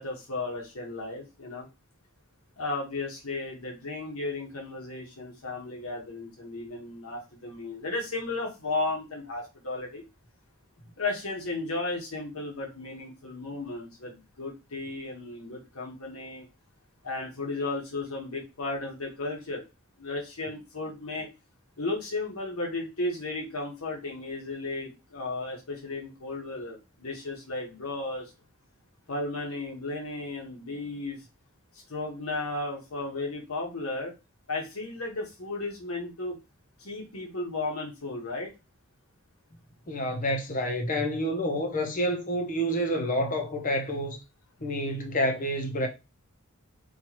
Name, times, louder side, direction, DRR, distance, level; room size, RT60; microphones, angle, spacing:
voice 1, 0.0-1.7 2.6-10.0 11.0-16.5 17.0-19.6 20.0-21.3 21.8-28.3 29.1-31.2 31.9-34.1 34.5-36.4 36.8-38.5, left 2 dB, 80° left, 1.3 m, -34 dB
voice 2, 39.9-44.2 44.6-45.9, equal, 40° left, 0.8 m, -28 dB
4.5 x 2.6 x 3.0 m
head